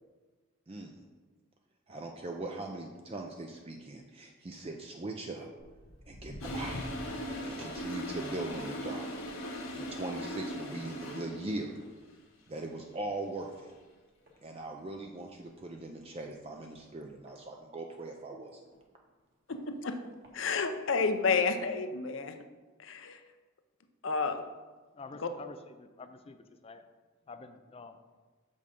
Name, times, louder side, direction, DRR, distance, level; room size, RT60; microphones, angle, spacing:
voice 1, 1.9-5.5 6.1-6.9 7.4-9.1 9.7-11.8 12.5-13.7 14.4-18.6, right 2 dB, 30° right, 2 dB, 0.5 m, -40 dB
Walk footsteps, 5.6-12.3 12.6-12.9 13.5-13.6 14.3-14.4 14.7-14.8 15.0-15.1 15.7-15.9 16.5-18.1 18.7-18.8 19.5-19.6 20.0-20.3 21.0-21.1, left 1 dB, 55° right, 1.7 m, -49 dB
Toilet flush, 6.4-11.6, equal, 85° left, 1.5 m, -39 dB
voice 2, 19.5-20.0 20.3-22.4 22.8-23.2 24.0-24.4 25.2-25.3, left 4 dB, 65° left, 8 dB, 0.6 m, -30 dB
voice 3, 24.9-26.8 27.3-28.0, left 4 dB, 30° left, 9 dB, 0.4 m, -48 dB
6.7 x 5.3 x 5.2 m, 1.3 s
head